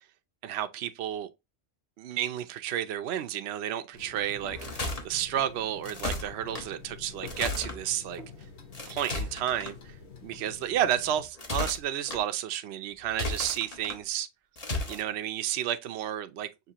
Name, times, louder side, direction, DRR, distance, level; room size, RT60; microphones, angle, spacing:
voice 1, 0.4-1.3 2.0-8.2 8.9-9.9 10.2-14.3 14.9-16.5, right 11 dB, 65° right, 0.8 m, -31 dB
sound 1, 3.9-11.3, left 5 dB, 60° left, 1.5 m, -48 dB
sound 2, 4.4-5.0 5.8-6.6 7.2-7.8 8.7-9.7 11.2-12.2 13.1-14.0 14.6-15.0, left 2 dB, 35° left, 1.1 m, -34 dB
5.9 x 2.9 x 2.8 m
omnidirectional pair, 1.3 m